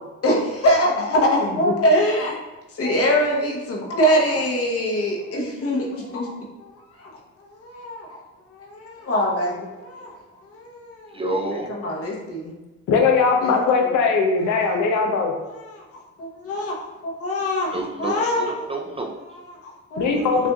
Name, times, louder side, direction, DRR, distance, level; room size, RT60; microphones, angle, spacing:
voice 1, 0.2-2.3 2.7-6.3 6.6-6.7 7.0-7.1 7.4-8.2 8.5-10.1 10.4-11.2 11.7-12.5 13.4-13.6 13.8-13.9 14.5-14.7 15.5-16.8 17.0-18.5 19.3-20.5, equal, 50° left, -2 dB, 1.0 m, -24 dB
voice 2, 11.1-11.7 17.7-19.2, right 2 dB, 20° right, 1 dB, 0.4 m, -29 dB
voice 3, 12.9-15.3 20.0-20.5, left 4 dB, 75° left, 2 dB, 0.6 m, -19 dB
5.9 x 2.6 x 2.3 m, 1.1 s
cardioid pair, 90°, 30 cm